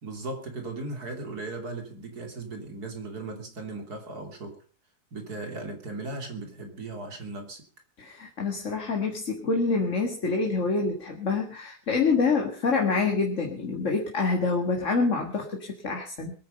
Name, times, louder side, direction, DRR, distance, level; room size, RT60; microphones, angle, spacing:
voice 1, 0.0-4.6 5.1-7.6, right 2 dB, 80° right, 4 dB, 3.6 m, -37 dB
voice 2, 8.0-16.3, left 4 dB, 50° left, 2 dB, 2.2 m, -26 dB
22.5 x 9.5 x 5.4 m, 0.40 s
omnidirectional pair, 1.6 m